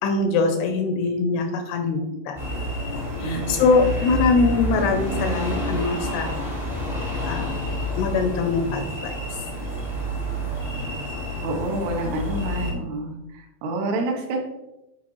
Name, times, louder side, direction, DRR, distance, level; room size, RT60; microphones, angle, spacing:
voice 1, 0.0-2.4 2.9-6.4 7.2-7.6 8.0-9.2, left 4 dB, 80° left, 5 dB, 2.5 m, -23 dB
sound 1, 2.3-12.7, equal, 30° right, 0.7 m, -29 dB
voice 2, 3.2-3.7 11.4-14.4, right 2 dB, 75° right, 2 dB, 2.7 m, -28 dB
9.6 x 4.6 x 3.0 m, 0.95 s
omnidirectional pair, 5.1 m